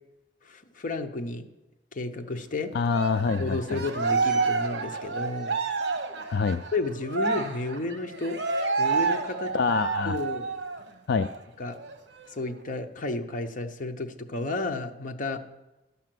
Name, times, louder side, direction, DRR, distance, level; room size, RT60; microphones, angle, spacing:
voice 1, 0.4-1.5 1.9-2.7 3.4-5.5 6.7-8.4 8.8-9.5 10.0-10.5 11.6-11.8 12.3-15.4, left 2 dB, 45° left, 5 dB, 0.9 m, -32 dB
voice 2, 2.7-3.8 6.3-6.6 9.5-10.2 11.1-11.3, left 5 dB, 60° left, 9 dB, 0.4 m, -26 dB
Cheering, 2.8-10.8 11.2-11.4 11.7-12.7, right 4 dB, 65° right, 1.0 m, -29 dB
12.0 x 5.7 x 7.6 m, 1.0 s
head